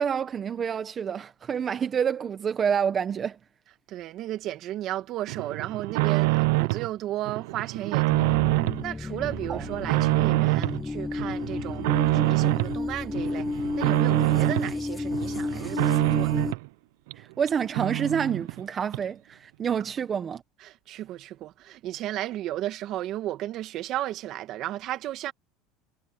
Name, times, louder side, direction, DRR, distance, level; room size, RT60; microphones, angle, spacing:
voice 1, 0.0-3.4 9.5-9.6 17.2-20.4, right 7 dB, 30° right, 1.4 m, -28 dB
voice 2, 3.9-8.4 8.8-16.5 20.6-25.3, right 14 dB, 50° right, 2.0 m, -34 dB
sound 1, 5.3-6.9 7.2-8.8 9.2-10.8 11.2-12.8 13.1-14.7 15.1-16.7 17.1-17.2 17.5-17.6 17.7-18.6 18.9-19.0, right 23 dB, 80° right, 0.7 m, -25 dB
sound 2, 8.1-16.5, left 3 dB, 15° left, 1.1 m, -32 dB
supercardioid pair, 125°, 0 cm